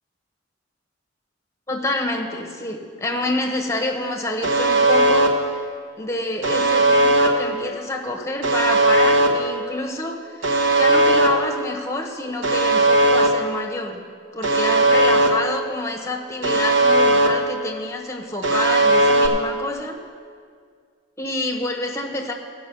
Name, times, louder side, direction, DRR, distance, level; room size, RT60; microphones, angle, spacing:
voice 1, 1.7-5.6 6.0-10.5 10.8-14.0 14.3-20.0 21.2-22.3, left 2 dB, 15° left, 2 dB, 1.1 m, -27 dB
Alarm, 4.4-5.3 6.4-7.3 8.4-9.3 10.4-11.3 12.4-13.3 14.4-15.3 16.4-17.3 18.4-19.3, right 2 dB, 70° right, 1.1 m, -17 dB
16.0 x 5.4 x 6.9 m, 2.1 s
head